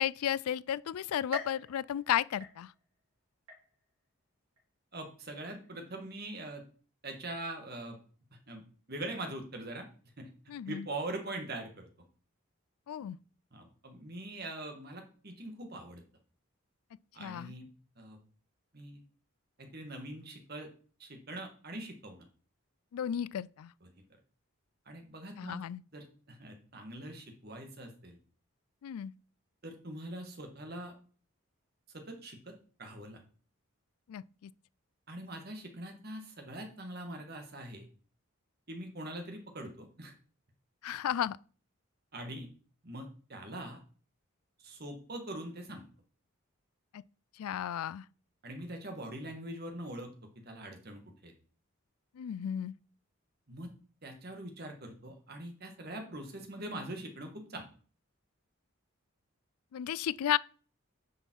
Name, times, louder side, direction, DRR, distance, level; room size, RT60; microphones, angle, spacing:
voice 1, 0.0-2.7 10.5-10.8 12.9-13.2 17.2-17.5 22.9-23.7 25.4-25.8 28.8-29.1 34.1-34.5 40.8-41.4 46.9-47.0 47.4-48.0 52.2-52.8 59.7-60.4, left 10 dB, 85° left, 0.3 m, -33 dB
sound 1, 1.3-3.0 3.5-4.1 4.6-4.7 5.6-5.7, equal, 80° right, 3.0 m, -46 dB
voice 2, 4.9-6.6 7.0-8.0 8.3-8.6 8.9-9.9 10.2-10.3 10.7-11.9 13.5-16.0 17.1-17.7 18.0-18.2 18.7-19.0 19.6-20.7 21.0-22.3 23.8-23.9 24.9-25.6 25.9-28.2 29.6-30.9 31.9-33.2 35.1-37.9 38.7-40.1 42.1-42.5 42.8-43.8 44.6-45.8 48.4-50.1 50.5-51.3 53.5-53.7 54.0-57.7, right 1 dB, 45° right, 1.7 m, -43 dB
9.6 x 5.5 x 4.6 m
head